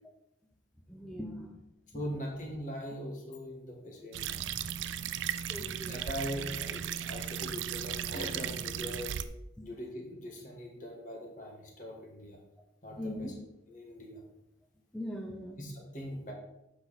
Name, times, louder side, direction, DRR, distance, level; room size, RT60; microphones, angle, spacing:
voice 1, 0.9-1.5 1.9-2.0 5.0-5.2 5.5-6.0 9.6-9.7 13.0-13.3 14.9-15.6, left 1 dB, 5° left, 0 dB, 0.6 m, -40 dB
voice 2, 1.9-4.7 5.9-9.2 9.6-12.4 12.8-13.3 13.7-14.2 15.6-16.3, equal, 45° left, 0 dB, 1.7 m, -41 dB
sound 1, 4.1-9.2, right 9 dB, 90° right, 0.4 m, -36 dB
8.1 x 5.7 x 4.1 m, 0.86 s
head